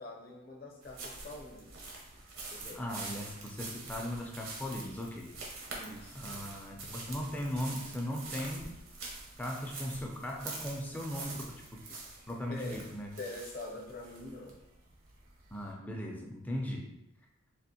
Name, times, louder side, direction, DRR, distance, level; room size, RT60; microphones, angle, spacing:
voice 1, 0.0-1.7 2.5-2.8 5.8-6.2 12.5-12.9 13.2-14.6, left 2 dB, 45° left, -1 dB, 0.6 m, -44 dB
sound 1, 0.8-15.7, right 3 dB, 75° right, 0.8 m, -46 dB
voice 2, 2.7-5.3 6.1-8.7 9.4-11.8 12.3-13.1 15.5-16.9, equal, 10° left, 0 dB, 0.3 m, -38 dB
3.4 x 2.4 x 2.7 m, 0.86 s
head